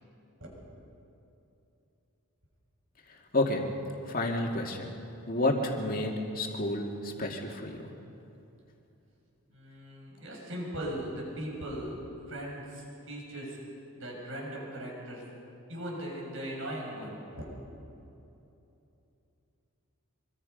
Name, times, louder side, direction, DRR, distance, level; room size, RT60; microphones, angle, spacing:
voice 1, 4.1-4.9 5.3-7.8, left 1 dB, 40° left, 1 dB, 2.3 m, -30 dB
voice 2, 9.5-12.0 12.3-13.6 13.9-15.2 15.7-17.4, right 1 dB, 60° right, -2 dB, 6.7 m, -39 dB
24.5 x 24.5 x 5.4 m, 2.9 s
head